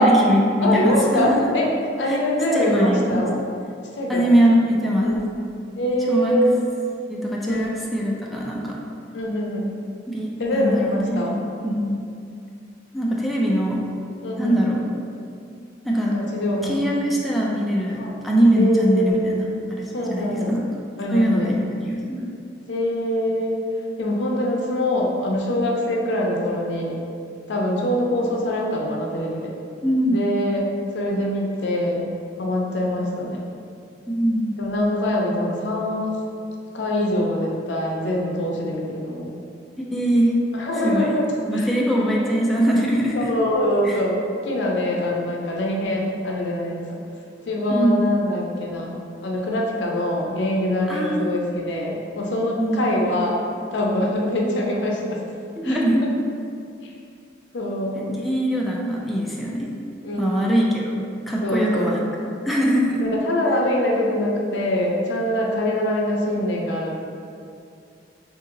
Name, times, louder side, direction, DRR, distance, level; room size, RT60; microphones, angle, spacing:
voice 1, 0.0-1.4 2.1-2.2 2.5-3.2 4.1-5.2 6.1-6.4 7.1-8.8 10.1-11.3 11.6-12.0 12.9-13.8 14.4-14.8 15.8-16.2 16.6-19.4 19.7-20.7 21.1-22.2 29.8-30.2 34.1-34.5 39.9-40.3 40.8-41.1 41.5-43.3 43.8-44.0 47.7-48.1 50.9-51.4 52.6-52.8 55.6-56.1 57.9-59.7 60.2-62.0 62.5-63.0, equal, ahead, -4 dB, 0.3 m, -22 dB
voice 2, 0.6-1.7 2.0-3.4 3.9-4.3 5.0-5.2 5.8-6.5 7.5-7.7 9.1-9.7 10.4-11.4 14.2-14.6 16.1-16.9 18.0-18.2 18.6-19.4 19.9-20.6 21.0-21.6 22.7-23.6 24.0-27.0 27.5-29.5 30.1-32.1 32.4-33.4 34.6-36.2 36.7-39.3 40.5-41.2 41.5-41.8 43.1-46.8 47.4-48.9 49.2-53.4 53.7-55.2 55.6-55.8 57.5-58.1 60.0-60.5 61.4-62.0 63.0-67.0, left 1 dB, 70° left, -1 dB, 0.5 m, -24 dB
2.8 x 2.7 x 3.8 m, 2.4 s
head